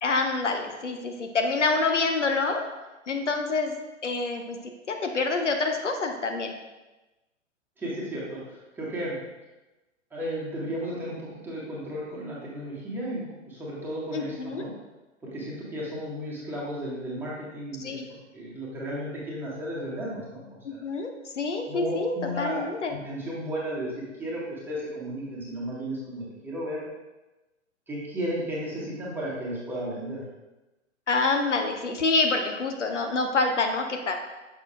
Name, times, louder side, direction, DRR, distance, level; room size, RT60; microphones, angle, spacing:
voice 1, 0.0-2.6 3.1-3.7 4.0-4.6 4.9-6.5 14.1-14.7 17.8-18.1 20.6-23.0 31.1-34.2, left 3 dB, 70° left, 5 dB, 0.8 m, -27 dB
voice 2, 7.8-9.2 10.1-14.7 15.3-18.0 18.3-20.8 21.7-26.8 27.9-30.2, right 1 dB, 5° right, -7 dB, 1.5 m, -34 dB
6.7 x 6.5 x 2.3 m, 1.1 s
figure-of-eight pair, 110°, 37 cm